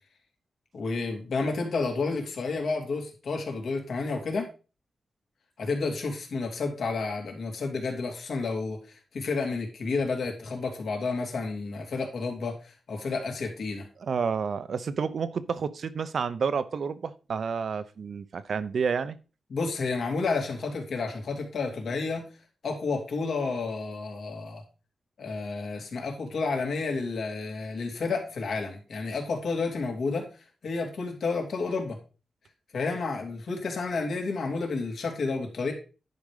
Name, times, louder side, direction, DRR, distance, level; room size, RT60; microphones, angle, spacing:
voice 1, 0.7-4.5 5.6-13.9 19.5-22.2 22.6-24.6 25.2-30.2 30.6-32.0 32.7-35.7, left 4 dB, 70° left, 2.9 m, -30 dB
voice 2, 14.0-19.2, right 6 dB, 60° right, 0.7 m, -30 dB
10.5 x 5.2 x 4.9 m
wide cardioid pair, 145°, 0 cm